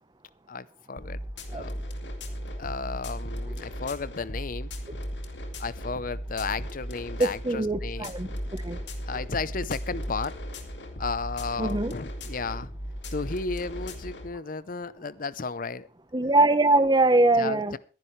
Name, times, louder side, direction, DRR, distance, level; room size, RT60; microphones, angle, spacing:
voice 1, 0.5-1.2 1.5-1.8 2.6-4.7 5.6-8.1 9.0-10.3 11.0-12.7 13.1-15.9 17.4-17.8, left 4 dB, 50° left, 0.7 m, -33 dB
sound 1, 1.0-14.3, equal, 80° left, 2.3 m, -36 dB
voice 2, 7.2-8.8 11.6-11.9 16.1-17.8, right 2 dB, 25° right, 0.9 m, -23 dB
21.5 x 10.5 x 3.2 m
head